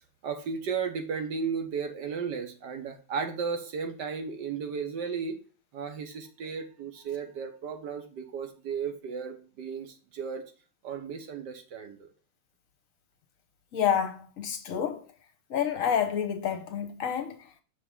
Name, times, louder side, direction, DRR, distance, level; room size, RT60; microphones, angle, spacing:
voice 1, 0.2-5.4 5.7-10.4 10.8-12.1, right 6 dB, 65° right, 1.6 m, -34 dB
voice 2, 13.7-15.1 15.5-17.6, left 8 dB, 55° left, 1.1 m, -29 dB
6.6 x 5.2 x 3.7 m
omnidirectional pair, 2.1 m